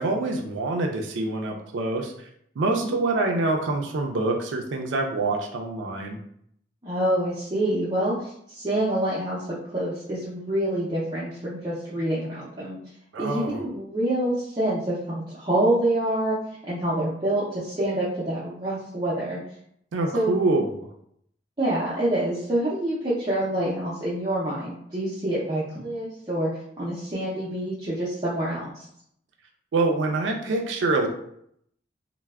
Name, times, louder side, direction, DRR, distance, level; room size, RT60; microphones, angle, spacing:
voice 1, 0.0-2.3 2.6-6.2 13.1-13.6 19.9-20.9 29.7-31.1, right 2 dB, 85° right, 3 dB, 0.4 m, -25 dB
voice 2, 6.8-12.8 13.2-16.4 16.7-19.4 20.1-20.3 21.6-26.5 26.8-28.9, right 1 dB, 25° right, -9 dB, 0.5 m, -26 dB
3.3 x 2.0 x 2.2 m, 0.70 s
head